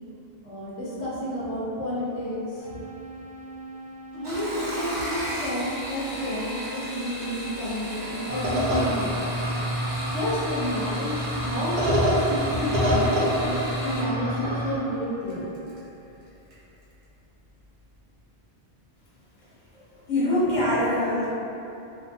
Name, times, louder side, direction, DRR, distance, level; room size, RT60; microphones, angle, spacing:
voice 1, 0.4-2.8 4.1-9.5 10.1-15.5, equal, 85° left, -8 dB, 1.0 m, -30 dB
sound 1, 2.6-15.5, right 1 dB, 15° right, 0.6 m, -42 dB
sound 2, 4.1-14.1 15.3-15.8 16.2-16.6 16.9-17.0, equal, 85° right, 1.1 m, -36 dB
sound 3, 8.3-14.8, equal, 65° right, 0.8 m, -26 dB
voice 2, 19.7-21.3, left 1 dB, 45° left, -10 dB, 0.9 m, -24 dB
2.6 x 2.1 x 2.7 m, 2.9 s
omnidirectional pair, 1.2 m